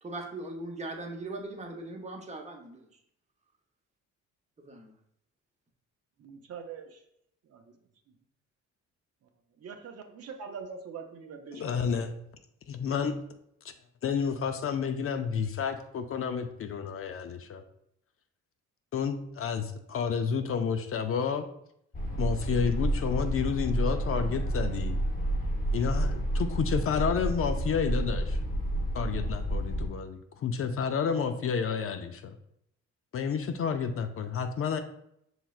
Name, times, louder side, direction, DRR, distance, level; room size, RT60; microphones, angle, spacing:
voice 1, 0.0-2.9 4.7-4.8, right 2 dB, 20° right, 2 dB, 0.8 m, -39 dB
voice 2, 6.2-7.0 7.5-7.6 9.6-12.0, right 6 dB, 55° right, 5 dB, 0.6 m, -43 dB
voice 3, 11.5-12.1 12.7-13.2 14.0-17.6 18.9-21.5 22.2-25.0 25.7-28.4 28.9-32.3 33.1-34.8, left 6 dB, 50° left, 7 dB, 0.4 m, -30 dB
sound 1, 21.9-29.9, right 1 dB, 25° left, 0.8 m, -30 dB
5.8 x 3.1 x 2.4 m, 0.73 s
cardioid pair, 90°, 30 cm